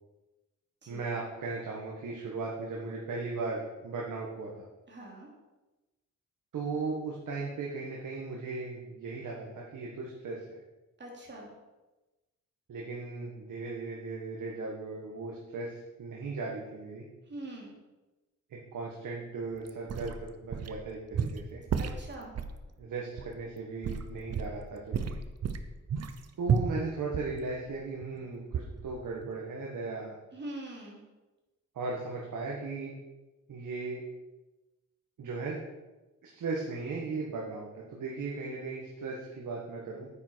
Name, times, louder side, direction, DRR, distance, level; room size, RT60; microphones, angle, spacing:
voice 1, 0.9-4.7 6.5-10.5 12.7-15.7 16.0-17.1 18.5-21.6 22.8-25.2 26.4-30.2 31.7-32.9 33.5-34.0 35.2-35.6 36.2-40.1, right 3 dB, 85° right, -3 dB, 1.7 m, -37 dB
voice 2, 4.9-5.3 11.0-11.5 17.3-17.7 21.8-22.3 30.3-31.0, right 1 dB, 35° right, -2 dB, 3.0 m, -43 dB
sound 1, 19.7-20.8 21.1-22.6 23.2-23.3 23.8-24.6 24.9-28.2 28.5-29.0 29.2-29.3, right 6 dB, 55° right, 0.8 m, -32 dB
9.5 x 9.0 x 4.6 m, 1.1 s
wide cardioid pair, 135°, 31 cm